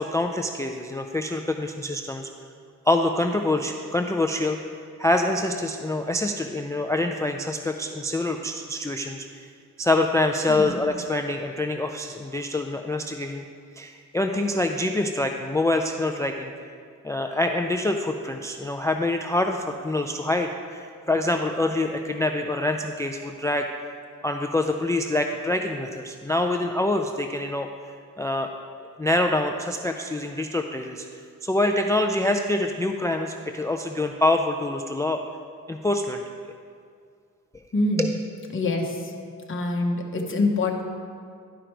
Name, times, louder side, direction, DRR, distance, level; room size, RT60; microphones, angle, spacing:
voice 1, 0.0-2.3 2.9-4.6 5.0-9.5 9.8-13.4 13.8-16.5 17.0-23.7 24.2-27.7 28.2-28.5 29.0-31.1 31.4-35.2 35.7-36.2 38.0-38.1, left 2 dB, 10° left, 5 dB, 0.3 m, -25 dB
voice 2, 10.5-10.8 37.7-38.2 38.5-39.1 39.5-40.8, left 2 dB, 35° left, 1 dB, 1.1 m, -25 dB
11.5 x 5.0 x 4.5 m, 2.2 s
cardioid pair, 105°, 34 cm